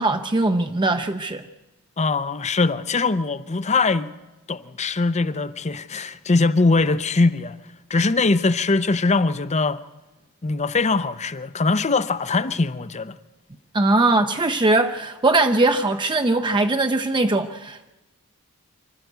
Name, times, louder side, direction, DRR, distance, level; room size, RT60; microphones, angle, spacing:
voice 1, 0.0-1.4 13.7-17.9, right 2 dB, 20° right, 0.6 m, -20 dB
voice 2, 2.0-4.1 4.5-7.6 7.9-9.8 10.4-13.1, left 3 dB, 30° left, 0.6 m, -21 dB
25.0 x 13.0 x 8.0 m
head